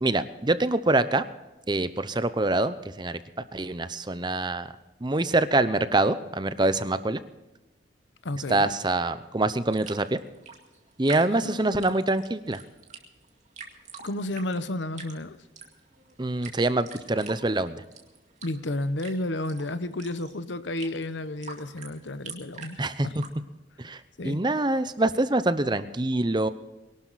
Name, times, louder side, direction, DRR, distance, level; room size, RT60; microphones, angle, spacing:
voice 1, 0.0-1.2 1.7-3.2 3.5-4.7 5.0-7.2 8.5-10.2 11.0-12.6 16.2-17.8 22.8-23.1 23.8-24.0 24.2-26.5, right 2 dB, 25° right, 12 dB, 0.8 m, -25 dB
voice 2, 8.2-8.7 11.3-11.9 14.0-15.4 18.4-23.2 24.2-24.4, left 1 dB, 85° left, 13 dB, 0.9 m, -32 dB
sound 1, 9.6-23.3, right 5 dB, 40° right, 2.2 m, -46 dB
23.0 x 12.0 x 4.1 m, 1.0 s
head